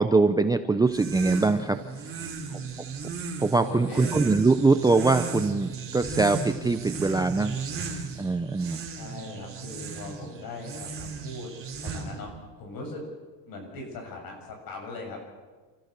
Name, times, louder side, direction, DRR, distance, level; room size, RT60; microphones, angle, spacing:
voice 1, 0.0-2.3 3.4-7.5 8.2-8.9, right 3 dB, 10° right, 9 dB, 0.5 m, -23 dB
sound 1, 0.8-12.4, right 5 dB, 30° right, 3.5 m, -35 dB
voice 2, 2.1-2.6 3.6-4.1 8.9-11.5 11.8-13.1 13.5-15.2, left 2 dB, 55° left, 2 dB, 7.2 m, -40 dB
29.0 x 14.5 x 6.7 m, 1.4 s
cardioid pair, 140°, 42 cm